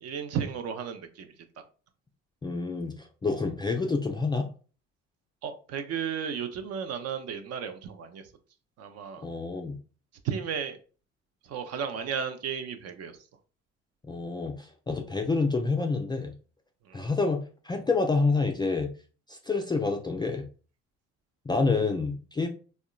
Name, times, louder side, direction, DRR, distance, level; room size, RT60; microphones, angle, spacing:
voice 1, 0.0-1.3 5.4-8.2 8.8-9.2 10.2-10.8 11.4-13.2 16.9-17.0, right 7 dB, 45° right, 9 dB, 0.5 m, -34 dB
voice 2, 2.4-4.5 9.2-9.8 14.1-16.3 16.9-18.9 19.3-20.5 21.5-22.5, left 3 dB, 15° left, 3 dB, 0.3 m, -28 dB
3.6 x 2.1 x 2.3 m, 0.38 s
figure-of-eight pair, 50°, 35 cm